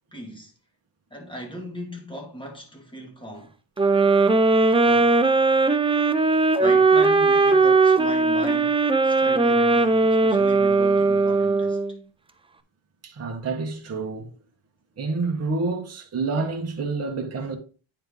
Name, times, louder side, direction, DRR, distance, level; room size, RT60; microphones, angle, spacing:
voice 1, 0.1-0.5 1.1-3.5 4.8-5.2 6.4-11.8, equal, 10° left, 1.8 m, -37 dB
sound 1, 3.8-12.0, right 3 dB, 15° right, 0.3 m, -19 dB
voice 2, 13.0-14.3 15.0-17.6, right 3 dB, 30° right, 1.2 m, -28 dB
9.3 x 4.5 x 3.8 m
wide cardioid pair, 165°, 49 cm